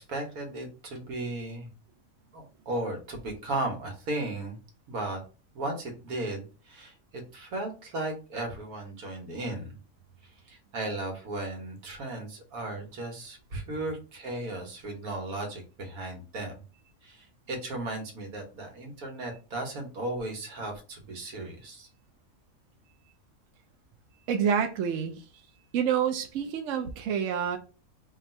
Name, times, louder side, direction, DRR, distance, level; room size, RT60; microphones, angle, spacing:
voice 1, 0.0-1.7 2.3-4.6 4.9-5.2 5.5-9.8 10.2-16.5 17.0-21.9, right 2 dB, 85° right, 2 dB, 1.6 m, -36 dB
voice 2, 24.3-25.2 25.7-27.6, right 7 dB, 70° right, 5 dB, 0.9 m, -28 dB
3.5 x 2.4 x 4.2 m, 0.35 s
omnidirectional pair, 1.5 m